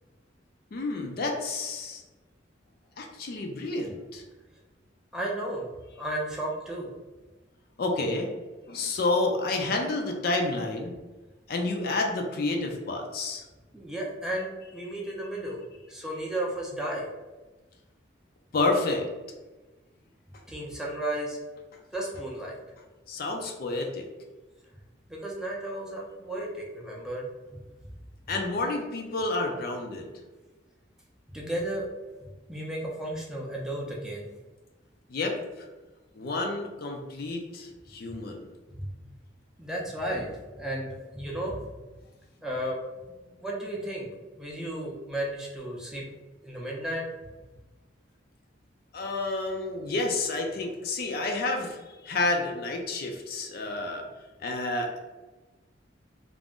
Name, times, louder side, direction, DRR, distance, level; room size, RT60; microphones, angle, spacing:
voice 1, 0.7-2.0 3.0-4.2 7.8-8.3 8.7-10.9 11.5-13.4 18.5-19.1 23.1-24.0 28.3-30.1 35.1-35.4 36.2-38.4 48.9-51.8 52.0-54.1 54.4-55.0, left 2 dB, 55° left, 2 dB, 0.4 m, -29 dB
voice 2, 5.1-5.7 6.0-6.9 13.7-15.6 15.9-17.1 20.5-21.4 21.9-22.6 25.1-27.6 31.3-31.9 32.5-34.3 38.8-38.9 39.6-41.5 42.4-42.8 43.4-46.1 46.4-47.0, right 1 dB, 5° right, -3 dB, 0.4 m, -33 dB
2.4 x 2.1 x 3.5 m, 1.2 s
head